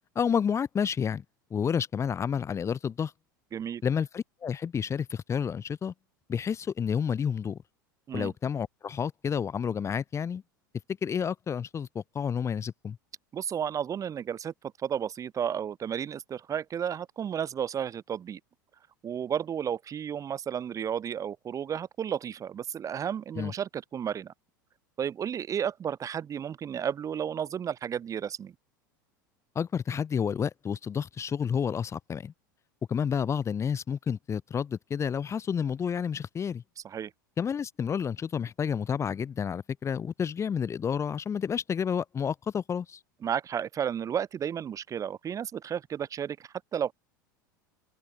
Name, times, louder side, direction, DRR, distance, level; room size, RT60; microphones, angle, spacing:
voice 1, 0.1-1.2 1.5-3.1 3.8-5.9 6.3-7.6 8.1-10.4 11.0-13.0 23.4-23.5 29.5-32.3 32.9-36.6 37.4-43.0, left 7 dB, 25° left, 4.3 m, -30 dB
voice 2, 13.3-14.5 14.8-18.4 19.0-24.3 25.0-28.5 36.8-37.1 43.2-46.9, right 8 dB, 30° right, 7.0 m, -32 dB
open air
figure-of-eight pair, 80°, 11 cm